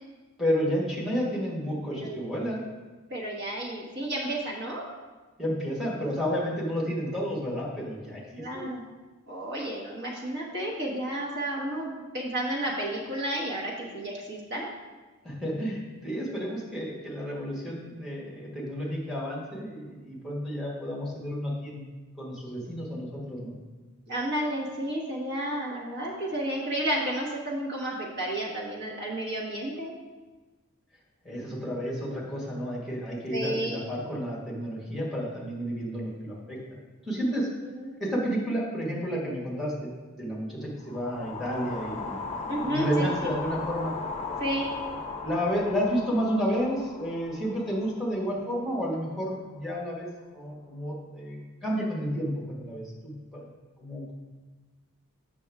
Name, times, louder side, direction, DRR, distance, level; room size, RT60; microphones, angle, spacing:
voice 1, 0.4-2.6 5.4-8.7 15.2-21.8 22.2-23.6 31.2-36.6 37.0-37.5 38.0-39.9 40.2-43.9 45.2-50.1 50.3-53.4 53.8-54.1, equal, ahead, -5 dB, 1.5 m, -31 dB
voice 2, 3.1-4.8 8.4-8.8 9.3-14.7 24.1-29.9 33.3-33.8 37.8-37.9 42.5-43.3 44.4-44.7, right 1 dB, 50° right, -3 dB, 1.3 m, -32 dB
sound 1, 40.8-49.1, left 4 dB, 30° left, 0.5 m, -37 dB
7.8 x 6.0 x 3.5 m, 1.3 s
head